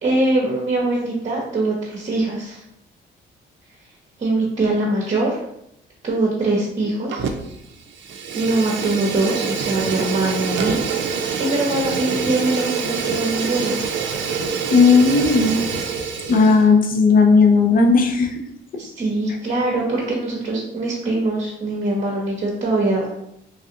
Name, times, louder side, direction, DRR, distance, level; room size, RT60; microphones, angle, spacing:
voice 1, 0.0-2.6 4.2-5.4 6.0-7.3 8.3-13.8 18.8-23.1, right 2 dB, 40° right, -3 dB, 0.8 m, -22 dB
Fire, 7.1-7.6 7.9-16.7, right 6 dB, 70° right, 0.5 m, -26 dB
voice 2, 14.7-15.7 16.3-18.3, left 4 dB, 45° left, 3 dB, 0.5 m, -14 dB
3.2 x 2.4 x 2.8 m, 0.77 s
cardioid pair, 90°, 20 cm